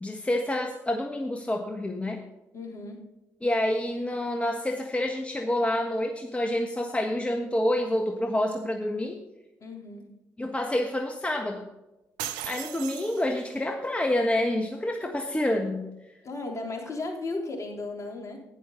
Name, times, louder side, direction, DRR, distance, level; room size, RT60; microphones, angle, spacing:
voice 1, 0.0-2.2 3.4-9.2 10.4-11.7 12.4-15.9, left 1 dB, 15° left, 3 dB, 1.5 m, -28 dB
voice 2, 2.5-3.1 9.6-10.1 16.2-18.4, left 2 dB, 45° left, 2 dB, 3.5 m, -35 dB
sound 1, 12.2-13.7, right 12 dB, 80° right, 0.7 m, -37 dB
12.0 x 10.0 x 3.9 m, 0.96 s
hypercardioid pair, 50°, 7 cm